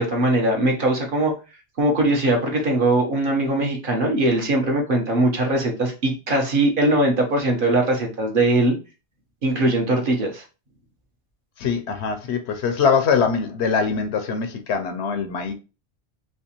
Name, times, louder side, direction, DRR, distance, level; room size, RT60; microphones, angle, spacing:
voice 1, 0.0-1.3 1.8-8.8 9.4-10.4, right 1 dB, 50° right, 1.1 m, -20 dB
voice 2, 11.6-15.5, left 6 dB, 75° left, 0.9 m, -22 dB
3.3 x 3.0 x 2.9 m
omnidirectional pair, 1.2 m